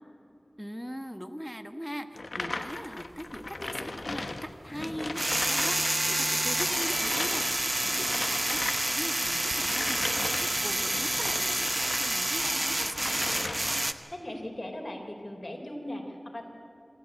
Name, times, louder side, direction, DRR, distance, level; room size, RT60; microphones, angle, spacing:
voice 1, 0.6-13.5, equal, ahead, 8 dB, 1.3 m, -41 dB
sound 1, 2.1-6.0 6.2-12.1 12.5-14.0, left 2 dB, 80° left, 1.0 m, -38 dB
sound 2, 2.7-2.8 4.8-13.9, right 1 dB, 35° right, 0.9 m, -28 dB
Motorcycle, 4.9-12.1, right 1 dB, 90° right, 5.3 m, -53 dB
voice 2, 14.1-16.4, left 1 dB, 45° left, 2 dB, 3.9 m, -38 dB
26.5 x 13.5 x 8.2 m, 2.7 s
wide cardioid pair, 55°, 0 cm